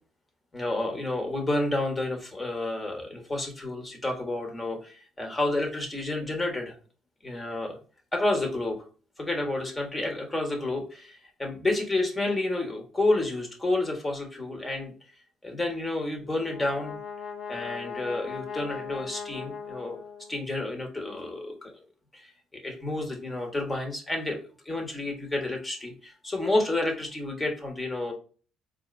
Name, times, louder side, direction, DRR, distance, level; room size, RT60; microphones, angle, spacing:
voice 1, 0.5-6.7 7.2-7.8 8.1-8.8 9.2-14.9 15.4-17.0 17.5-20.0 20.3-21.7 22.1-24.4 24.6-28.1, left 2 dB, 15° left, 2 dB, 1.3 m, -30 dB
Brass instrument, 16.2-20.6, left 6 dB, 55° left, 1.0 m, -39 dB
4.2 x 2.6 x 3.2 m, 0.38 s
cardioid pair, 105°, 0 cm